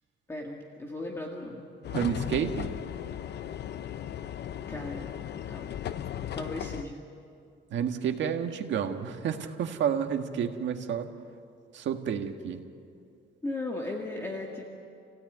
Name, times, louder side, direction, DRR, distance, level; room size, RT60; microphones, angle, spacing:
voice 1, 0.3-1.7 4.7-5.1 5.5-5.8 6.3-7.0 13.4-14.6, left 2 dB, 15° left, -1 dB, 1.9 m, -36 dB
sound 1, 1.8-6.8, left 10 dB, 65° left, 0.8 m, -36 dB
voice 2, 1.9-2.7 7.7-11.1 11.7-12.6, right 8 dB, 80° right, 5 dB, 1.7 m, -30 dB
29.0 x 17.0 x 9.4 m, 2.5 s
cardioid pair, 160°, 19 cm